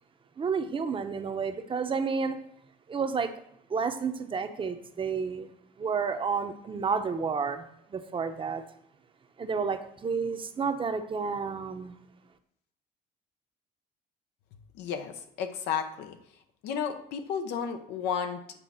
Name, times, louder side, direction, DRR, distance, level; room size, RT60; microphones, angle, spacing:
voice 1, 0.4-2.4 2.9-3.3 3.7-5.5 5.8-8.6 9.4-12.0, right 5 dB, 30° right, 8 dB, 0.8 m, -31 dB
voice 2, 14.7-16.2 16.6-18.4, left 7 dB, 85° left, 7 dB, 0.9 m, -32 dB
8.4 x 3.6 x 5.6 m, 0.74 s
cardioid pair, 110°, 17 cm